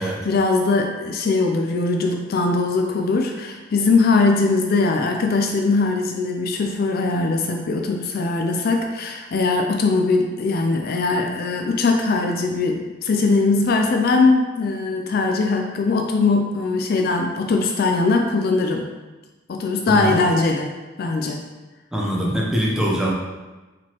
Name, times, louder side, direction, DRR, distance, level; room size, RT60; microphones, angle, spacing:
voice 1, 0.0-18.9 19.5-20.7 21.0-21.4, left 3 dB, 45° left, 3 dB, 0.3 m, -21 dB
voice 2, 19.9-20.2 21.9-23.1, equal, 5° right, -4 dB, 0.6 m, -23 dB
4.7 x 3.7 x 2.9 m, 1.2 s
head